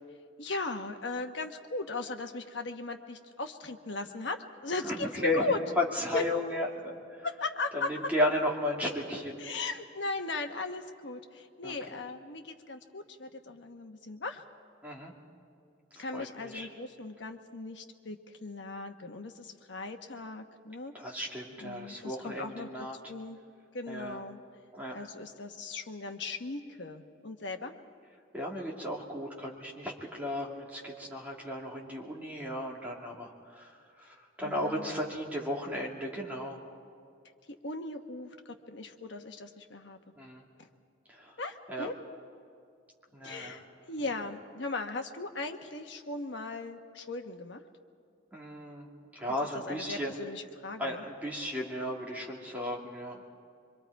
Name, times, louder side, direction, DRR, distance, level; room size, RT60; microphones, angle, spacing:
voice 1, 0.4-5.6 6.1-6.2 7.2-7.9 9.4-14.4 16.0-20.9 21.6-23.4 23.7-24.4 24.9-27.7 34.4-35.0 37.6-40.0 40.6-40.7 41.4-41.9 43.2-43.6 43.9-47.6 49.7-51.0, left 3 dB, 65° left, 5 dB, 1.3 m, -38 dB
voice 2, 4.8-5.5 5.8-7.3 7.7-9.4 11.6-12.0 14.8-15.1 15.9-16.7 20.9-23.0 23.9-24.2 24.7-24.9 28.3-36.6 40.2-40.4 41.1-41.4 41.7-41.9 43.1-43.6 48.3-50.1 50.8-53.2, left 1 dB, 10° right, -3 dB, 2.5 m, -34 dB
24.5 x 24.5 x 4.7 m, 2.3 s
head